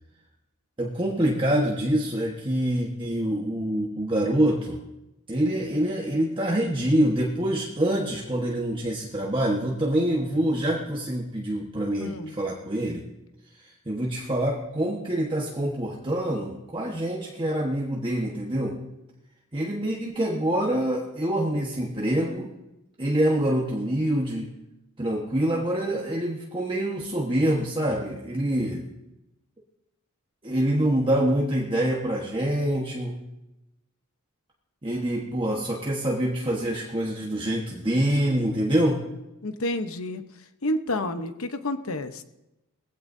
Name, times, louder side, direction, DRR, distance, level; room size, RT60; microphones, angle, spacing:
voice 1, 0.8-4.8 5.3-13.0 13.6-18.8 19.5-22.5 23.0-24.5 25.0-28.8 30.4-33.2 34.8-39.0, right 1 dB, 25° right, -3 dB, 1.3 m, -26 dB
voice 2, 12.0-12.3 39.4-40.2 40.6-42.2, left 1 dB, 70° left, 9 dB, 1.0 m, -29 dB
20.0 x 15.5 x 2.7 m, 0.95 s
head